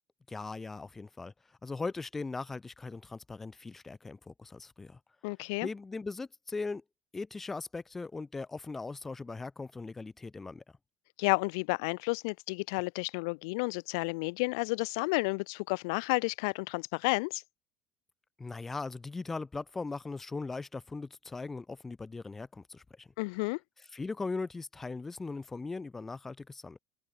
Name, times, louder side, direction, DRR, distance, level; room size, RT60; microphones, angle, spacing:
voice 1, 0.3-1.3 1.6-5.0 5.6-6.8 7.1-10.6 18.4-23.1 23.9-26.8, left 3 dB, 10° left, 3.7 m, -39 dB
voice 2, 5.2-5.7 11.2-17.4 23.2-23.6, left 30 dB, 90° left, 1.0 m, -31 dB
cardioid pair, 175°, 2 cm